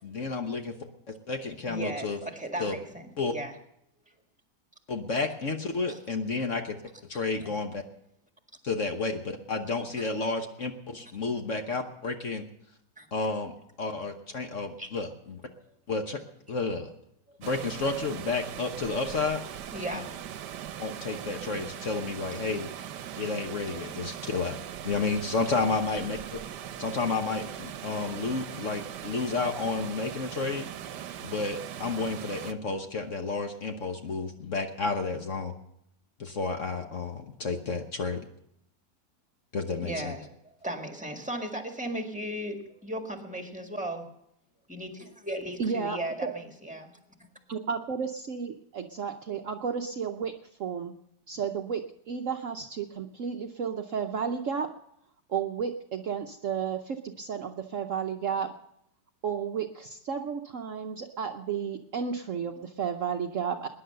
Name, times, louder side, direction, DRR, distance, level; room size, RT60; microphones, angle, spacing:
voice 1, 0.0-0.7 1.3-2.2 2.6-2.8 3.2-3.3 4.9-6.8 7.1-7.8 8.6-12.4 13.1-13.5 13.8-15.4 15.9-16.2 16.5-16.9 17.4-19.4 19.9-20.0 20.8-22.7 23.2-24.6 24.8-26.4 26.8-30.7 31.2-35.5 36.2-38.3 39.5-40.2, left 3 dB, 50° left, 5 dB, 1.3 m, -31 dB
voice 2, 1.6-3.5 5.9-6.0 7.4-7.5 13.0-13.1 14.8-14.9 19.7-20.2 25.9-26.0 39.8-40.3 40.6-44.1 44.7-46.9 47.2-47.3, right 1 dB, 5° right, 4 dB, 1.8 m, -36 dB
Water, 17.4-32.5, right 10 dB, 75° right, 1.3 m, -40 dB
voice 3, 45.6-46.3 47.5-50.3 50.6-50.9 51.3-54.7 55.3-58.5 59.2-63.7, right 6 dB, 55° right, 5 dB, 1.0 m, -32 dB
20.5 x 10.5 x 6.7 m, 0.76 s
omnidirectional pair, 1.9 m